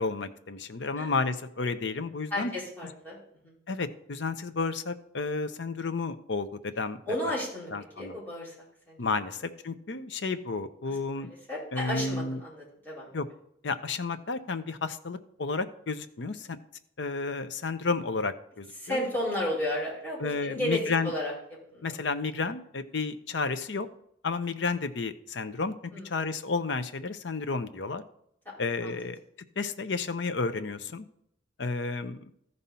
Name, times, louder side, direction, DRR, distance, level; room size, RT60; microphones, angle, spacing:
voice 1, 0.0-2.5 3.7-7.0 7.7-8.2 9.0-11.3 11.7-12.4 13.1-13.3 13.6-16.6 17.0-19.0 20.2-21.1 21.8-23.9 24.2-28.0 28.6-29.2 29.6-31.1 31.6-32.3, left 4 dB, 70° left, 10 dB, 0.7 m, -32 dB
voice 2, 2.3-3.2 3.4-3.5 7.1-8.5 8.9-9.0 11.2-13.1 18.8-21.3 21.7-21.8 25.9-26.1 28.4-28.5 28.8-28.9, left 1 dB, 10° left, -8 dB, 4.5 m, -33 dB
14.0 x 5.4 x 4.3 m, 0.71 s
head